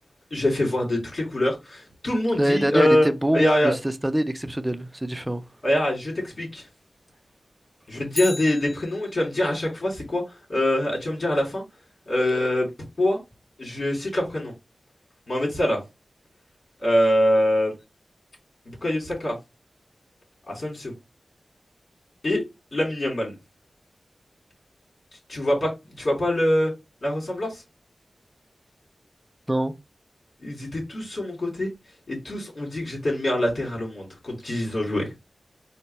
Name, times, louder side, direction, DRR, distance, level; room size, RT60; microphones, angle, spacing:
voice 1, 0.3-3.1 3.3-3.7 5.6-6.6 7.9-10.2 10.5-11.6 12.1-12.7 13.0-13.2 13.6-14.5 15.3-15.8 16.8-17.7 18.7-19.4 20.5-20.9 22.2-22.4 22.7-23.3 25.3-25.7 26.0-26.7 27.0-27.6 30.4-31.7 32.1-35.1, left 1 dB, 60° left, 2.7 m, -24 dB
voice 2, 2.4-5.4 29.5-29.7, right 1 dB, 15° right, 0.5 m, -24 dB
Bicycle, 8.1-9.5 17.8-17.9, left 2 dB, 35° left, 1.0 m, -36 dB
4.3 x 2.1 x 4.1 m
wide cardioid pair, 60°, 0 cm